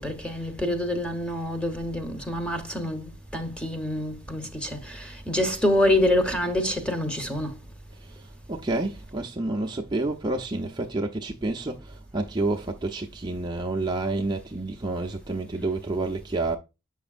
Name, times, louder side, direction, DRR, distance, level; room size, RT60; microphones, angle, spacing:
voice 1, 0.0-7.6, left 1 dB, 5° left, 1.1 m, -26 dB
voice 2, 8.5-16.6, right 2 dB, 20° right, 0.6 m, -29 dB
8.1 x 6.0 x 2.5 m
head